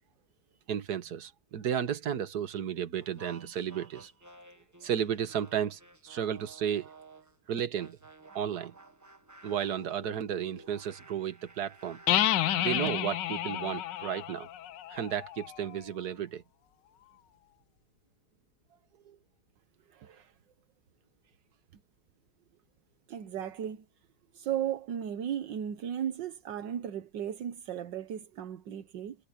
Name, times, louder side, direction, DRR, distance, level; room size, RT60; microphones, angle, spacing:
voice 1, 0.7-4.1 4.8-6.9 7.5-8.0 8.4-8.7 9.4-12.0 12.6-14.5 14.9-16.4 19.1-19.2, right 9 dB, 60° right, 1.8 m, -33 dB
sound 1, 3.0-7.3 7.8-12.6, right 2 dB, 10° right, 1.1 m, -53 dB
sound 2, 12.1-15.7, left 12 dB, 75° left, 1.4 m, -30 dB
voice 2, 19.9-20.3 23.1-23.8 24.3-29.2, right 9 dB, 80° right, 1.7 m, -36 dB
omnidirectional pair, 1.9 m